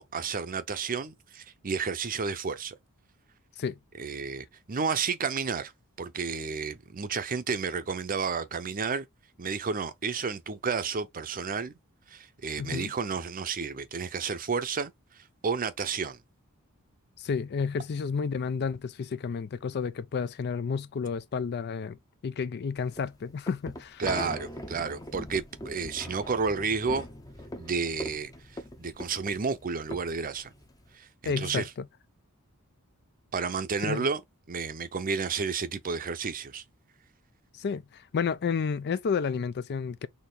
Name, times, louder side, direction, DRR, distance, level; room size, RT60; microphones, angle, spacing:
voice 1, 0.0-2.8 4.0-5.7 6.0-9.0 9.4-11.7 12.1-14.9 15.4-16.2 24.0-27.1 27.6-28.3 28.8-30.5 30.9-31.7 33.3-34.2 34.5-36.6, right 5 dB, 40° right, 0.6 m, -31 dB
voice 2, 12.6-12.9 17.2-24.0 31.2-31.7 33.8-34.0 37.6-40.1, left 5 dB, 50° left, 0.4 m, -31 dB
sound 1, 22.8-31.0, left 1 dB, 15° left, 0.7 m, -41 dB
4.3 x 2.8 x 3.8 m
head